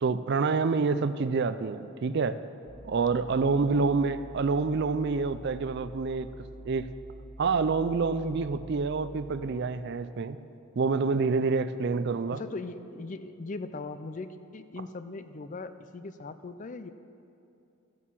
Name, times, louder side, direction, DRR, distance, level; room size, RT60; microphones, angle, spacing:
voice 1, 0.0-2.4 2.8-6.3 6.6-6.9 7.4-10.4 10.8-12.4, right 4 dB, 50° right, 13 dB, 0.4 m, -27 dB
sound 1, 2.7-9.5, right 1 dB, 90° right, 1.8 m, -47 dB
voice 2, 12.3-16.9, left 3 dB, 35° left, 11 dB, 0.4 m, -39 dB
13.5 x 8.3 x 7.4 m, 2.7 s
head